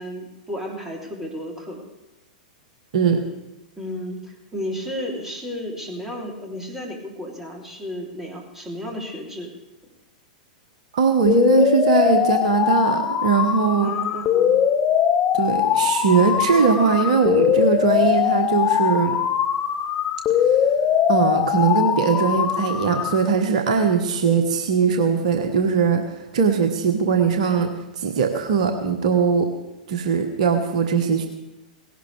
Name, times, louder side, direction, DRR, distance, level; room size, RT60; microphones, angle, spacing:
voice 1, 0.0-1.8 3.8-9.5 13.8-14.6, equal, 10° right, -1 dB, 3.3 m, -33 dB
voice 2, 10.9-13.9 15.3-19.2 21.1-29.5 29.9-31.3, right 6 dB, 55° right, 5 dB, 1.3 m, -20 dB
sound 1, 11.3-23.3, left 9 dB, 30° left, 1.0 m, -21 dB
18.0 x 17.0 x 3.4 m, 0.99 s
figure-of-eight pair, 100°, 4 cm